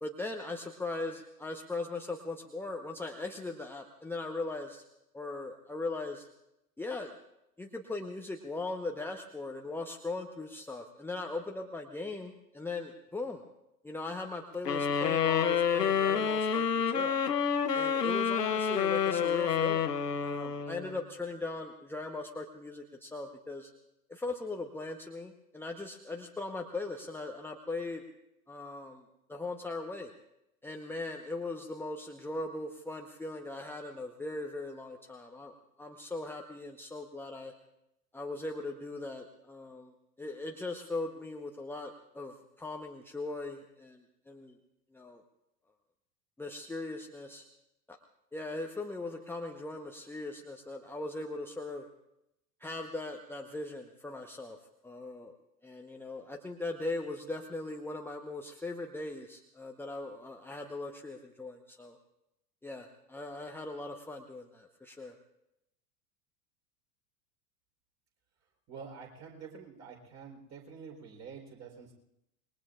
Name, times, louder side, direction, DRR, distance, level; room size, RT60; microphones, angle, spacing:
voice 1, 0.0-4.8 5.1-6.3 6.8-7.1 7.6-13.4 13.8-17.2 17.7-19.9 20.2-23.7 24.1-28.0 28.5-29.0 29.3-30.1 30.6-37.5 38.1-44.6 44.9-45.2 46.4-47.5 47.9-48.0 48.3-51.9 52.6-54.6 54.8-55.4 55.6-62.0 62.6-65.2, left 2 dB, 5° left, 2 dB, 1.0 m, -39 dB
sound 1, 14.7-21.1, left 7 dB, 80° left, 1.0 m, -28 dB
voice 2, 68.7-71.9, right 6 dB, 35° right, 2 dB, 4.0 m, -47 dB
26.5 x 21.5 x 2.5 m, 0.85 s
figure-of-eight pair, 85°, 47 cm